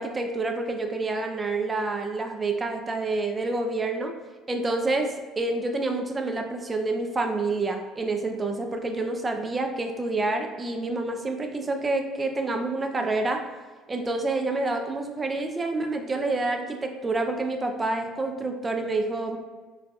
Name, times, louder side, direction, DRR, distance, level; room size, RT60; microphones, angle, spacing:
voice 1, 0.0-4.1 4.5-13.4 13.9-19.4, right 2 dB, 30° right, 5 dB, 0.4 m, -28 dB
3.2 x 2.2 x 2.5 m, 1.4 s
hypercardioid pair, 65°, 0 cm